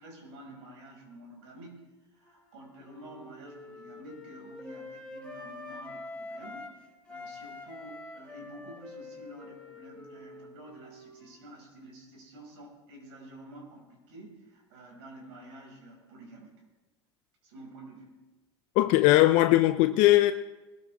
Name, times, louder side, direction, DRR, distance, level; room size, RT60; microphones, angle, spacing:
voice 1, 0.0-1.8 2.1-6.7 7.1-16.5 17.4-18.1, right 1 dB, 70° right, 6.0 m, -49 dB
Wind instrument woodwind instrument, 2.2-6.7 7.1-11.6, left 2 dB, 10° left, 3.5 m, -46 dB
voice 2, 18.8-20.3, left 16 dB, 55° left, 0.5 m, -20 dB
20.5 x 13.5 x 3.6 m
hypercardioid pair, 85°, 15 cm